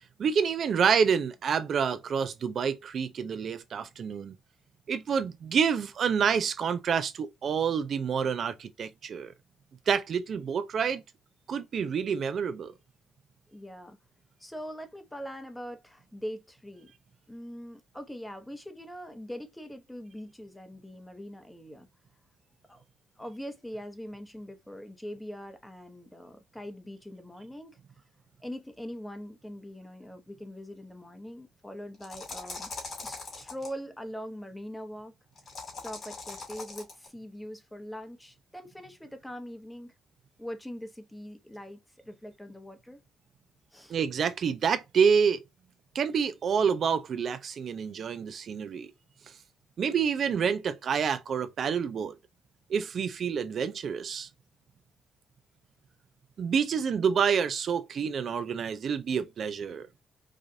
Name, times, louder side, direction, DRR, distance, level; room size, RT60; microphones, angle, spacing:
voice 1, 0.2-4.3 4.9-9.3 9.9-11.0 11.5-12.7 43.9-45.4 45.9-48.9 49.8-52.2 52.7-54.3 56.4-59.9, right 6 dB, 55° right, 0.5 m, -28 dB
voice 2, 13.5-14.0 14.4-16.9 17.3-21.9 22.7-22.8 23.2-27.8 28.4-32.7 33.0-35.1 35.7-39.9 40.4-43.0 43.7-44.0, equal, 5° left, 0.9 m, -42 dB
sound 1, 31.9-33.7 35.4-37.1, left 4 dB, 45° left, 2.5 m, -41 dB
4.8 x 2.5 x 2.6 m
cardioid pair, 90°, 0 cm